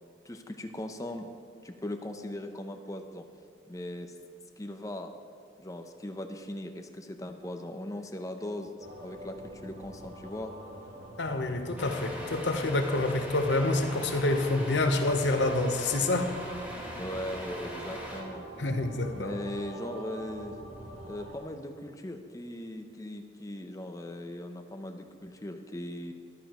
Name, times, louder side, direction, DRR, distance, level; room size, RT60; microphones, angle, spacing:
voice 1, 0.2-1.3 1.6-3.3 3.7-4.1 4.6-5.1 5.6-8.7 9.0-10.5 16.9-18.5 18.8-20.6 21.0-26.1, left 1 dB, 20° left, 6 dB, 0.7 m, -39 dB
sound 1, 8.8-21.4, right 1 dB, 75° right, 2.1 m, -44 dB
voice 2, 11.2-16.3 18.6-19.3, left 2 dB, 80° left, 6 dB, 1.0 m, -27 dB
Truck, 11.8-18.2, left 1 dB, 10° right, 2.0 m, -42 dB
14.0 x 12.5 x 3.1 m, 2.3 s
head